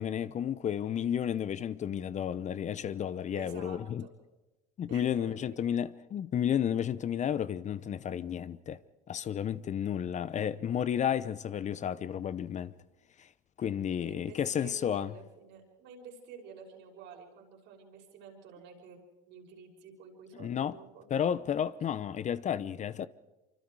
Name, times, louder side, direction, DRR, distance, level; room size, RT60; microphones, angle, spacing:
voice 1, 0.0-4.1 4.8-8.8 9.1-12.7 13.2-13.3 13.6-15.1 20.4-20.8 21.1-23.1, left 9 dB, 35° left, 0.8 m, -32 dB
voice 2, 3.3-4.1 4.9-5.7 14.0-19.0 19.3-21.1, right 5 dB, 65° right, 6.1 m, -50 dB
25.5 x 25.5 x 4.8 m
supercardioid pair, 90°, 20 cm